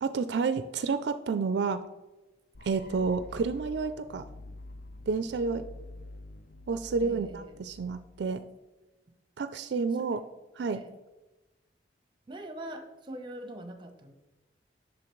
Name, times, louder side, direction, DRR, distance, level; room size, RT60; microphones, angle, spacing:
voice 1, 0.0-1.8 2.6-4.2 5.1-5.6 6.7-8.4 9.4-10.2 10.6-10.8, right 4 dB, 65° right, 11 dB, 0.4 m, -30 dB
sound 1, 2.5-8.5, left 2 dB, 50° left, 0.5 m, -47 dB
voice 2, 7.0-7.6 9.9-10.0 10.6-10.9 12.3-14.1, right 1 dB, 25° right, 6 dB, 0.8 m, -43 dB
8.5 x 6.2 x 3.1 m, 1.1 s
head